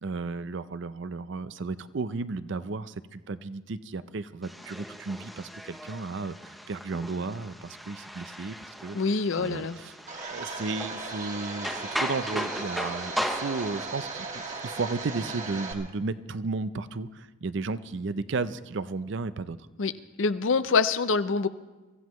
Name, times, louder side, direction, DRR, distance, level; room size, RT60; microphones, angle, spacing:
voice 1, 0.0-9.0 9.4-9.9 10.3-19.6, right 3 dB, 60° right, 14 dB, 0.5 m, -34 dB
sound 1, 4.4-13.9, equal, ahead, 0.8 m, -37 dB
voice 2, 8.9-9.8 19.8-19.9 20.2-21.5, left 4 dB, 70° left, 13 dB, 0.6 m, -25 dB
Domestic sounds home sounds, 10.1-15.7, right 3 dB, 35° right, 1.6 m, -37 dB
23.5 x 15.0 x 3.1 m, 1.2 s
head